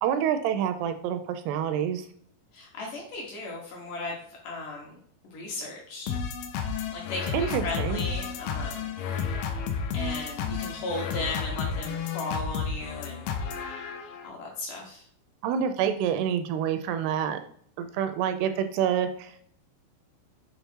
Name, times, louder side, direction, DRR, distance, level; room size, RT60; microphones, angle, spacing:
voice 1, 0.0-2.1 7.3-8.0 15.4-17.4 17.8-19.4, right 9 dB, 85° right, 9 dB, 2.5 m, -27 dB
voice 2, 2.5-4.2 4.4-5.0 5.2-6.1 6.9-8.9 9.9-13.3 14.2-15.0, left 2 dB, 65° left, -2 dB, 2.3 m, -36 dB
sound 1, 6.1-14.3, left 6 dB, 80° left, 2.2 m, -32 dB
6.9 x 3.4 x 4.4 m, 0.63 s
omnidirectional pair, 4.8 m